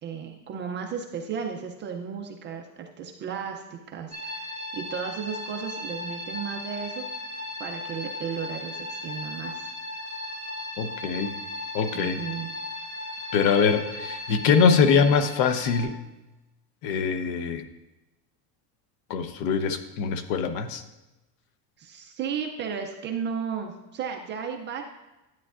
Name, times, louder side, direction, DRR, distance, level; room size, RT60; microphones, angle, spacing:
voice 1, 0.0-7.0 7.6-9.7 11.9-12.5 21.8-24.8, right 7 dB, 25° right, 3 dB, 0.4 m, -34 dB
sound 1, 4.1-15.8, left 1 dB, 40° left, 3.2 m, -36 dB
voice 2, 10.8-11.3 11.7-12.2 13.3-16.0 16.8-17.6 19.1-20.8, left 6 dB, 60° left, 10 dB, 0.9 m, -23 dB
12.5 x 9.0 x 2.4 m, 1.0 s
cardioid pair, 160°, 47 cm